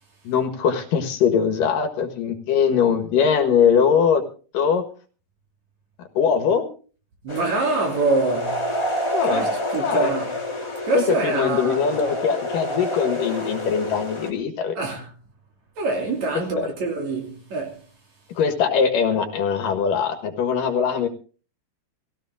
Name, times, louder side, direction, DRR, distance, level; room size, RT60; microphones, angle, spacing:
voice 1, 0.2-4.2 4.5-4.8 6.1-6.6 9.1-9.5 9.8-10.1 10.9-14.8 16.6-16.7 18.4-21.1, left 7 dB, 65° left, 3.0 m, -21 dB
voice 2, 7.2-8.7 9.2-10.3 10.9-12.1 14.8-15.1 15.8-17.8, right 3 dB, 50° right, 4.1 m, -25 dB
sound 1, 7.3-14.3, equal, 10° left, 1.6 m, -28 dB
17.0 x 16.5 x 3.6 m
omnidirectional pair, 4.4 m